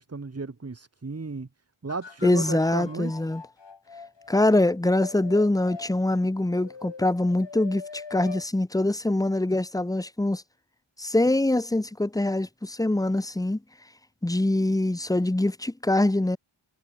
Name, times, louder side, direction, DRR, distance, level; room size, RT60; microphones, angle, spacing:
voice 1, 0.0-1.5 1.8-3.1, right 4 dB, 30° right, 2.0 m, -34 dB
sound 1, 1.9-5.9 6.5-8.5 8.8-8.9, left 5 dB, 60° left, 7.9 m, -43 dB
voice 2, 2.2-3.4 4.3-10.4 11.0-13.6 14.2-16.4, left 1 dB, 5° left, 0.9 m, -24 dB
wide cardioid pair, 105°, 49 cm